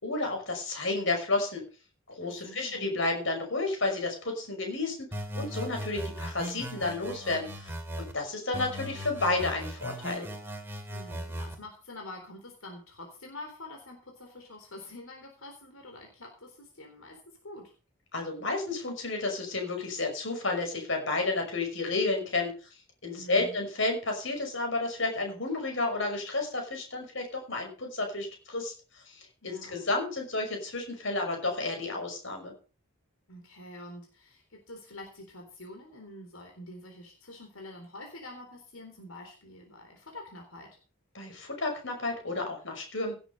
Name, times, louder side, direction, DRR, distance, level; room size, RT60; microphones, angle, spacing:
voice 1, 0.0-1.6 2.1-10.3 18.1-22.7 23.0-28.7 29.1-32.5 41.1-43.2, left 2 dB, 65° left, 3 dB, 5.7 m, -31 dB
voice 2, 2.2-2.9 10.9-17.7 23.1-23.7 29.4-29.8 33.3-40.7, left 1 dB, 85° left, 2 dB, 3.9 m, -46 dB
sound 1, 5.1-8.1 8.5-11.6, equal, 10° right, 2.6 m, -38 dB
17.5 x 8.8 x 5.4 m, 0.37 s
head